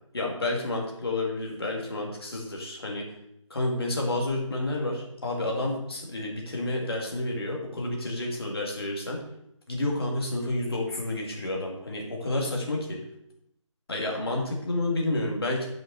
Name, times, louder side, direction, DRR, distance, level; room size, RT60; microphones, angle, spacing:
voice 1, 0.1-3.1 3.5-9.2 9.7-13.0 13.9-15.7, left 2 dB, 50° left, -1 dB, 2.2 m, -30 dB
9.0 x 6.2 x 4.2 m, 0.76 s
figure-of-eight pair, 175°, 17 cm